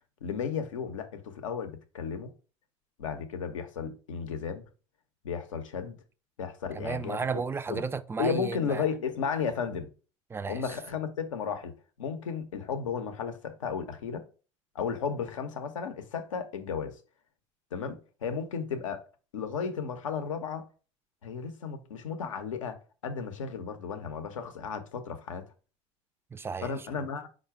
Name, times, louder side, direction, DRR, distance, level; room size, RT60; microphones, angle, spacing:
voice 1, 0.2-2.3 3.0-4.6 5.2-6.0 6.4-7.2 7.7-7.8 8.2-9.9 10.5-14.3 14.7-17.0 17.7-19.0 19.3-20.7 21.2-25.5 26.6-27.3, left 6 dB, 90° left, 0.6 m, -34 dB
voice 2, 6.7-8.8 10.3-10.7 26.3-26.7, right 5 dB, 15° right, 0.3 m, -33 dB
4.7 x 2.2 x 4.5 m
hypercardioid pair, 80°, 16 cm